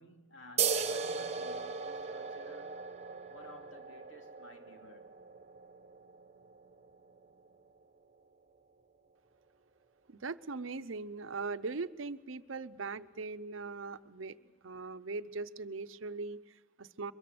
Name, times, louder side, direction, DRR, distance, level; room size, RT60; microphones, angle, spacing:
voice 1, 0.0-2.8 3.3-5.1 14.4-14.6, left 2 dB, 70° left, 2.8 m, -55 dB
sound 1, 0.6-7.7, right 6 dB, 35° right, 1.2 m, -38 dB
voice 2, 10.1-14.4 14.6-17.1, right 4 dB, 80° right, 0.8 m, -40 dB
23.5 x 21.0 x 7.8 m
head